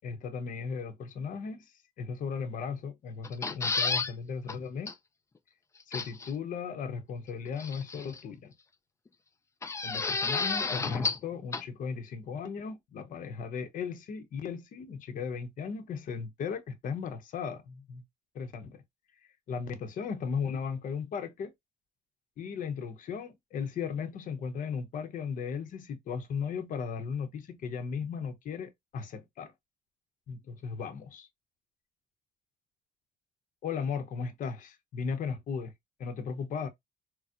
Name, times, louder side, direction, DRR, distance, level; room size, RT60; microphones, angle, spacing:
voice 1, 0.0-1.7 2.0-4.9 5.9-8.5 9.8-18.0 18.3-18.8 19.5-21.5 22.4-29.5 30.3-31.3 33.6-35.7 36.0-36.7, left 6 dB, 50° left, 0.7 m, -36 dB
sound 1, 3.2-4.1 4.5-4.6 4.9-5.0 5.9-6.3 7.6-8.2 9.6-11.3 11.5-11.6, left 4 dB, 15° left, 0.4 m, -31 dB
4.2 x 2.0 x 2.4 m
cardioid pair, 110°, 17 cm